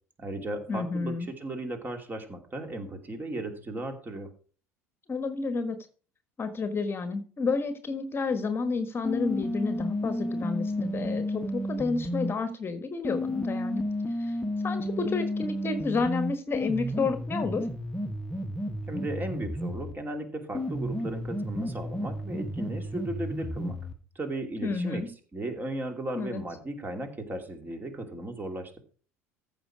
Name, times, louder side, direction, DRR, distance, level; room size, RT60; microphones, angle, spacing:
voice 1, 0.2-4.3 18.9-23.8 24.1-25.0 25.3-28.8, right 1 dB, 20° right, 5 dB, 2.7 m, -36 dB
voice 2, 0.7-1.3 5.1-5.8 6.4-14.4 14.6-17.7 24.6-25.1 26.1-26.4, left 4 dB, 30° left, 9 dB, 1.4 m, -30 dB
sound 1, 9.0-12.3 13.0-20.0 20.5-24.0, left 1 dB, 10° left, 1.3 m, -32 dB
14.5 x 5.9 x 4.9 m, 0.40 s
figure-of-eight pair, 65°, 8 cm